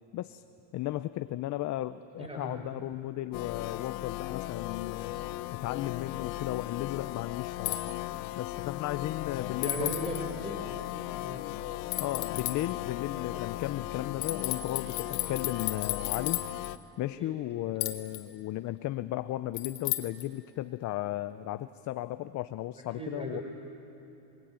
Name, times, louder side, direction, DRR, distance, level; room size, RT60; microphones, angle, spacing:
voice 1, 0.7-5.2 5.6-8.0 8.4-10.1 12.0-16.4 17.0-23.4, left 15 dB, 40° left, 12 dB, 0.6 m, -35 dB
voice 2, 2.2-2.6 9.6-10.7 11.2-11.4 13.2-13.4 17.2-17.3 22.9-23.4, right 1 dB, 10° right, 1 dB, 4.6 m, -37 dB
sound 1, 3.3-16.8, left 16 dB, 85° left, 0.9 m, -37 dB
sound 2, 7.6-7.8 9.6-10.2 11.9-12.6 14.2-16.7 17.8-18.2 19.6-20.2, left 16 dB, 65° left, 1.9 m, -33 dB
27.5 x 21.0 x 8.9 m, 2.8 s
supercardioid pair, 120°, 49 cm